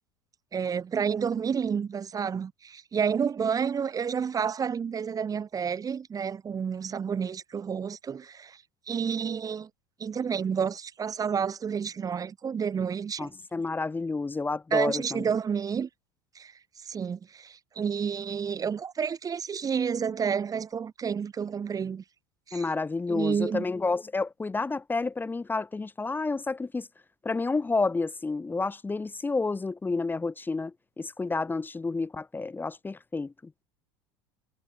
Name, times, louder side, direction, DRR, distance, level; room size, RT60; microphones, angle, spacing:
voice 1, 0.5-8.6 8.9-9.7 10.0-13.3 14.7-15.9 16.4-16.5 16.8-22.0 22.5-22.7 23.1-23.6, right 7 dB, 30° right, 3.9 m, -30 dB
voice 2, 13.2-15.2 22.5-26.9 27.2-33.3, left 3 dB, 15° left, 3.2 m, -30 dB
hypercardioid pair, 90°, 12 cm